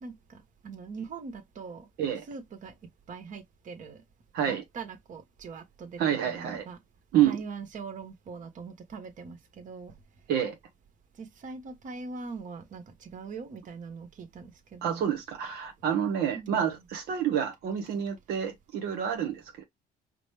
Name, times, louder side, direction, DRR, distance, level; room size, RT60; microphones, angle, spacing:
voice 1, 0.0-1.9 2.3-2.7 3.1-4.0 4.4-6.0 6.3-6.8 7.2-9.9 11.2-15.0 16.3-16.8, right 4 dB, 50° right, 1.2 m, -42 dB
voice 2, 6.0-6.6 7.1-7.4 10.3-10.6 14.8-19.6, right 9 dB, 75° right, 1.0 m, -28 dB
5.0 x 2.0 x 3.3 m
cardioid pair, 110°, 17 cm